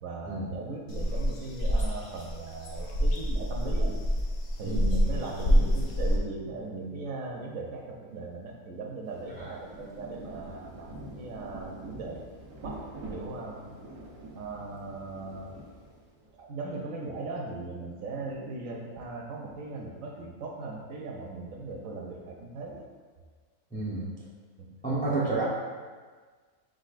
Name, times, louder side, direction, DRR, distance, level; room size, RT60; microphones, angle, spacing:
voice 1, 0.0-4.0 4.6-12.3 12.6-13.8 14.3-15.5 16.3-22.9 24.6-24.7, right 3 dB, 70° right, 0 dB, 0.9 m, -38 dB
sound 1, 0.9-6.2, equal, 65° left, 0.5 m, -26 dB
voice 2, 4.6-4.9 9.4-9.5 23.7-24.1 24.8-25.4, right 3 dB, 10° left, -6 dB, 0.3 m, -30 dB
Rain, 9.1-16.3, right 1 dB, 85° right, 1.5 m, -45 dB
5.1 x 3.8 x 2.4 m, 1.5 s
omnidirectional pair, 1.6 m